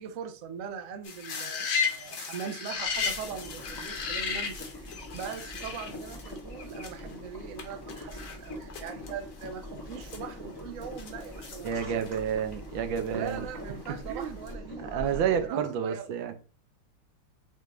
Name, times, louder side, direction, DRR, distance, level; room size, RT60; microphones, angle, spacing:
voice 1, 0.0-12.1 13.1-16.1, right 7 dB, 90° right, 0.7 m, -41 dB
sound 1, 1.0-7.1 7.6-7.7 7.9-9.1 9.4-9.5 9.9-12.4 13.0-13.9 14.2-14.5, left 6 dB, 60° left, 1.5 m, -35 dB
Boiling, 2.7-15.5, left 1 dB, 20° left, 0.6 m, -43 dB
voice 2, 11.6-13.5 14.1-14.4 14.8-16.3, right 8 dB, 70° right, 1.3 m, -30 dB
6.7 x 2.5 x 3.1 m
omnidirectional pair, 2.4 m